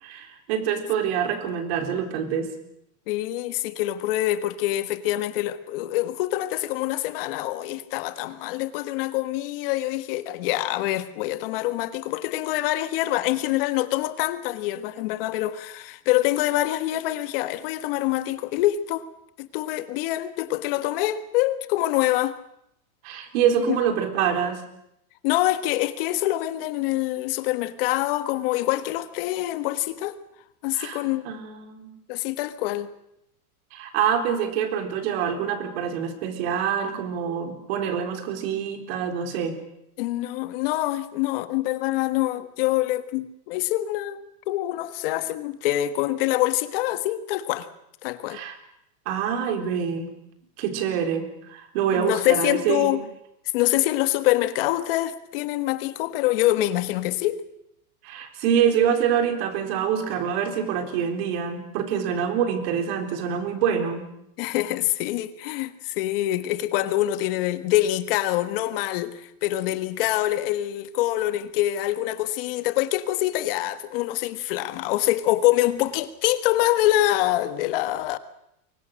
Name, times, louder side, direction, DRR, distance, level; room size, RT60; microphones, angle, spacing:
voice 1, 0.0-2.5 23.0-24.6 30.7-31.9 33.7-39.6 48.3-48.6 49.1-50.1 50.6-53.0 58.0-64.0, right 8 dB, 45° right, 4.0 m, -26 dB
voice 2, 3.1-19.1 19.4-22.4 23.7-23.8 25.2-30.2 30.6-31.3 32.1-32.9 40.0-44.2 44.5-47.7 48.0-48.4 51.9-53.0 53.5-57.4 62.1-62.2 64.4-78.2, left 15 dB, 40° left, 1.5 m, -25 dB
29.0 x 24.0 x 6.5 m
supercardioid pair, 175°, 44 cm